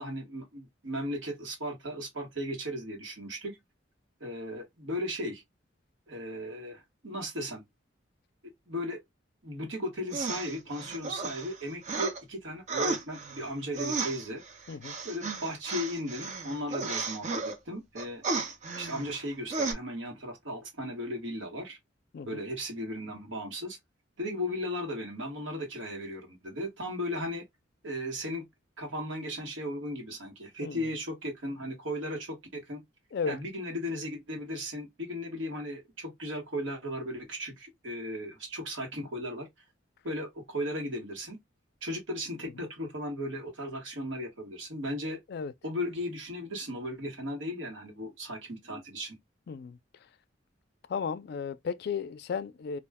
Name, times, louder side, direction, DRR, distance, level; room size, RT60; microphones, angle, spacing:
voice 1, 0.0-3.6 4.2-5.4 6.1-7.6 8.4-9.0 9.4-14.4 15.0-18.2 18.8-21.8 22.2-23.8 24.2-27.4 27.8-28.5 28.8-32.8 33.2-39.5 40.0-41.4 41.8-45.2 45.6-49.2, equal, 80° right, 1.2 m, -36 dB
sound 1, 10.1-12.2 12.7-17.6 18.0-19.3 19.5-19.7, right 4 dB, 40° right, 0.6 m, -34 dB
voice 2, 49.5-49.8 50.9-52.8, left 6 dB, 55° left, 0.3 m, -34 dB
2.4 x 2.1 x 3.4 m
head